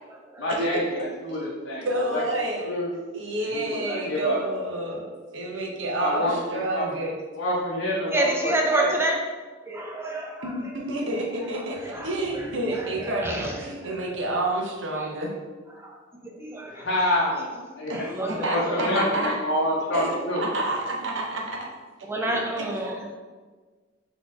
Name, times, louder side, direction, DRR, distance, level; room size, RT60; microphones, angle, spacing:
voice 1, 0.4-2.2 2.6-2.9 3.4-4.4 5.9-6.9 7.3-8.9 16.6-17.9 18.5-20.5 22.2-22.5, left 1 dB, 85° left, -6 dB, 0.8 m, -27 dB
voice 2, 1.8-2.6 3.1-5.1 5.3-7.1 10.4-15.3 17.9-18.0 18.3-19.4 19.9-21.7 22.7-22.8, right 1 dB, 75° right, -1 dB, 0.8 m, -29 dB
voice 3, 8.1-9.2 9.7-10.5 11.9-12.1 12.3-12.5 12.8-13.5 15.7-16.8 17.9-19.0 22.1-23.1, right 2 dB, 15° right, 0 dB, 0.4 m, -28 dB
4.2 x 3.0 x 3.6 m, 1.4 s
head